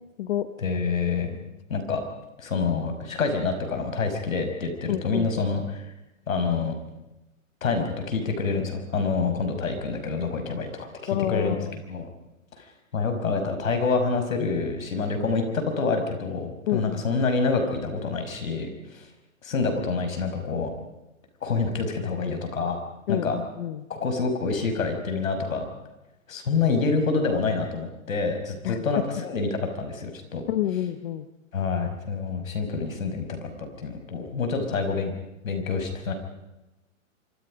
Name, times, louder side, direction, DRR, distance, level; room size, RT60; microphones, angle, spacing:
voice 1, 0.6-1.4 1.7-2.0 2.4-5.8 6.3-6.7 7.6-10.7 11.0-11.6 11.9-12.1 12.6-12.7 12.9-19.1 19.4-20.7 21.4-22.8 23.1-23.4 23.9-25.7 26.3-30.4 31.5-35.1 35.4-36.1, left 4 dB, 80° left, 6 dB, 6.2 m, -27 dB
voice 2, 4.9-5.3 11.1-11.8 16.7-17.0 23.1-23.9 28.6-28.8 30.5-31.3, left 12 dB, 50° left, 11 dB, 1.2 m, -28 dB
26.0 x 25.5 x 5.3 m, 0.98 s
hypercardioid pair, 135°, 40 cm